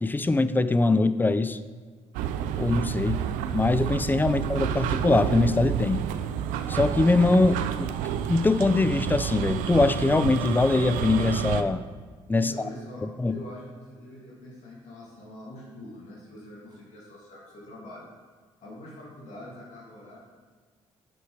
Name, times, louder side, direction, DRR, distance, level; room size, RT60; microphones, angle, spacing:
voice 1, 0.0-1.6 2.6-3.2 3.5-6.0 6.7-7.9 8.3-11.8 12.3-12.5 13.2-13.4, left 3 dB, 15° left, 13 dB, 0.4 m, -22 dB
sound 1, 2.1-11.6, right 9 dB, 85° right, 0.4 m, -29 dB
voice 2, 12.3-18.1 18.6-20.2, equal, 65° left, -6 dB, 2.3 m, -44 dB
6.6 x 6.1 x 4.8 m, 1.5 s
supercardioid pair, 65°, 13 cm